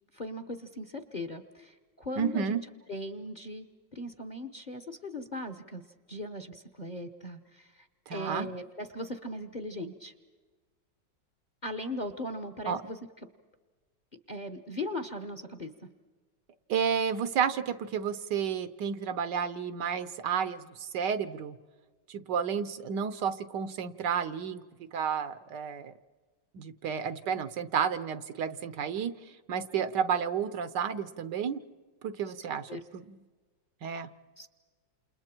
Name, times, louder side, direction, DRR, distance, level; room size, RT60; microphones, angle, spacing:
voice 1, 0.1-2.6 2.9-3.7 3.9-5.8 6.1-10.1 11.6-13.0 14.3-15.9 32.3-32.4 32.7-32.8 34.4-34.5, left 1 dB, 30° left, 8 dB, 1.0 m, -39 dB
voice 2, 2.2-2.6 8.1-8.5 12.7-12.8 16.7-21.6 22.1-24.6 24.9-25.9 26.5-29.1 29.5-31.6 32.0-33.2 33.8-34.1, right 7 dB, 70° right, 13 dB, 1.4 m, -31 dB
29.0 x 28.5 x 4.5 m, 1.3 s
omnidirectional pair, 2.0 m